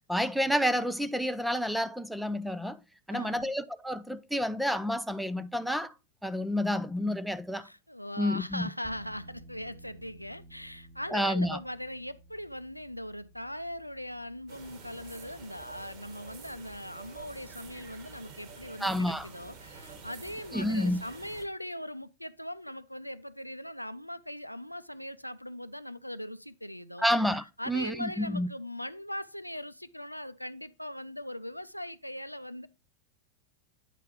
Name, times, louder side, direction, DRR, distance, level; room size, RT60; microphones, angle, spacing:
voice 1, 0.1-2.8 3.1-5.9 6.2-7.7 8.2-8.7 11.1-11.6 18.8-19.3 20.5-21.0 27.0-28.5, equal, ahead, 0.4 m, -29 dB
voice 2, 3.1-3.6 7.6-27.1 27.6-32.7, left 1 dB, 90° left, 0.4 m, -40 dB
sound 1, 8.8-21.2, right 1 dB, 20° left, 1.2 m, -56 dB
sound 2, 14.5-21.4, right 5 dB, 40° right, 1.8 m, -49 dB
9.0 x 5.7 x 3.1 m
figure-of-eight pair, 90°, 0 cm